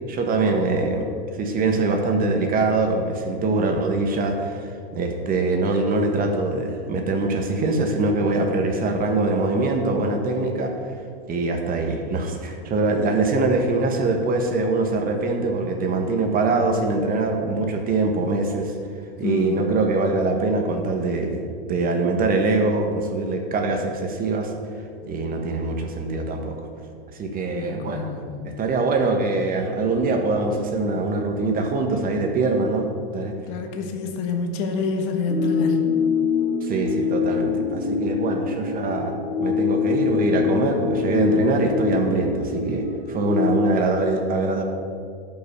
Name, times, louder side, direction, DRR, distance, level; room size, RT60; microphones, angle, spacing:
voice 1, 0.1-1.1 1.3-10.7 11.3-18.7 19.2-21.4 21.7-24.5 25.0-26.6 27.1-28.1 28.4-33.3 36.6-44.6, right 3 dB, 25° right, 4 dB, 1.4 m, -23 dB
voice 2, 19.2-19.7 27.6-28.3 33.5-35.9, left 3 dB, 45° left, 4 dB, 1.5 m, -27 dB
sound 1, 35.3-43.7, left 6 dB, 65° left, 1.7 m, -24 dB
12.0 x 5.9 x 6.7 m, 2.2 s
hypercardioid pair, 110°, 32 cm